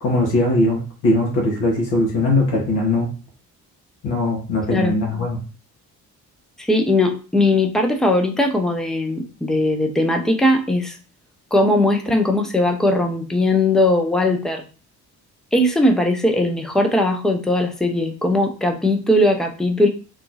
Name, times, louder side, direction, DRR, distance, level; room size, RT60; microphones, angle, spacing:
voice 1, 0.0-3.1 4.0-5.4, left 2 dB, 65° left, -1 dB, 1.1 m, -20 dB
voice 2, 6.7-11.0 11.5-14.6 15.5-19.9, left 1 dB, ahead, 3 dB, 0.4 m, -19 dB
2.9 x 2.2 x 2.7 m, 0.35 s
figure-of-eight pair, 40°, 46 cm